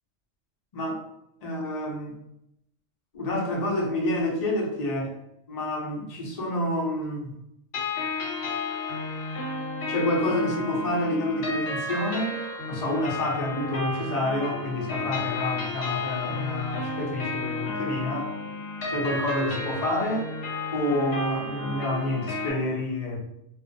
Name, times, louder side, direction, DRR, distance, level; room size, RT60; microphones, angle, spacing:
voice 1, 0.7-1.0 1.4-2.2 3.1-5.2 5.5-7.3 9.9-12.4 12.7-18.3 18.9-20.3 20.7-23.2, left 1 dB, 40° left, -2 dB, 0.6 m, -28 dB
sound 1, 7.7-22.5, left 3 dB, 60° left, 1.0 m, -32 dB
2.4 x 2.0 x 2.5 m, 0.79 s
omnidirectional pair, 1.3 m